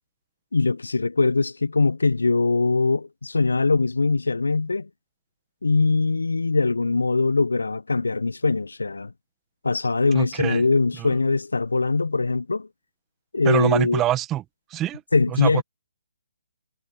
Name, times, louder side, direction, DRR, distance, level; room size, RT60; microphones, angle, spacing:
voice 1, 0.5-4.9 5.6-9.1 9.6-12.7 13.3-14.0 15.1-15.6, left 3 dB, 75° left, 1.1 m, -22 dB
voice 2, 10.1-10.6 11.0-11.1 13.4-14.4 14.7-15.0 15.3-15.5, right 13 dB, 15° right, 1.8 m, -24 dB
figure-of-eight pair, 140°, 0 cm